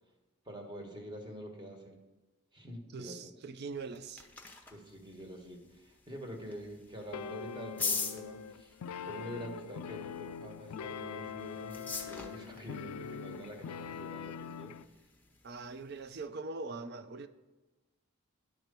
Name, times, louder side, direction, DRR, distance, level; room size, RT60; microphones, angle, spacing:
voice 1, 0.4-2.0 2.5-3.3 4.7-14.7, equal, 20° right, 1.2 m, -46 dB
voice 2, 2.9-4.3 15.4-17.3, right 3 dB, 50° right, 0.4 m, -42 dB
sound 1, 3.7-16.3, left 4 dB, 10° left, 0.7 m, -44 dB
sound 2, 7.1-14.9, left 7 dB, 85° left, 0.3 m, -43 dB
10.5 x 4.5 x 6.7 m
head